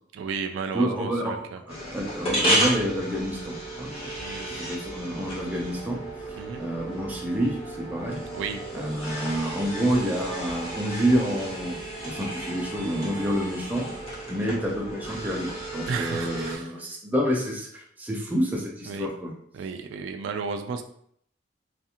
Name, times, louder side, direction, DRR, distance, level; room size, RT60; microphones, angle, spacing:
voice 1, 0.1-1.6 4.2-4.5 6.4-6.6 8.3-8.6 14.4-14.6 15.9-16.7 18.9-19.1 19.5-20.8, right 5 dB, 80° right, 6 dB, 0.3 m, -33 dB
voice 2, 0.7-4.1 4.5-6.0 6.6-8.3 8.7-11.8 12.0-13.9 14.3-19.3, equal, 10° right, -2 dB, 0.5 m, -28 dB
sound 1, 1.7-16.6, right 1 dB, 30° left, 1.1 m, -32 dB
2.5 x 2.4 x 2.8 m, 0.66 s
head